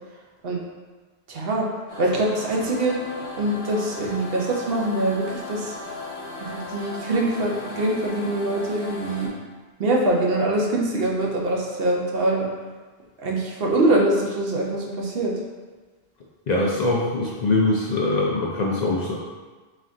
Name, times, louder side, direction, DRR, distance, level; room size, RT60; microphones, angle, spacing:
voice 1, 1.3-1.7 2.0-3.0 3.4-5.8 6.4-9.3 9.8-12.5 13.2-15.3, right 1 dB, 65° right, -1 dB, 0.9 m, -23 dB
sound 1, 1.9-9.3, left 2 dB, 70° left, 1.3 m, -36 dB
voice 2, 16.5-19.2, left 2 dB, 55° left, -3 dB, 0.5 m, -22 dB
4.1 x 2.4 x 3.8 m, 1.3 s
omnidirectional pair, 1.1 m